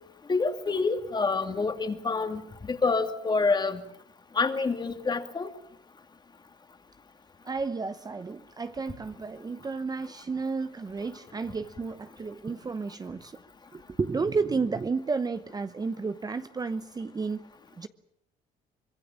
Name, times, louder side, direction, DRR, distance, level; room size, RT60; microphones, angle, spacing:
voice 1, 0.3-3.8 4.3-5.5, left 4 dB, 25° left, 2.5 m, -27 dB
voice 2, 7.4-13.4 13.7-17.4 17.8-17.9, right 4 dB, 20° right, 0.9 m, -32 dB
24.5 x 22.5 x 7.3 m
cardioid pair, 110°, 17 cm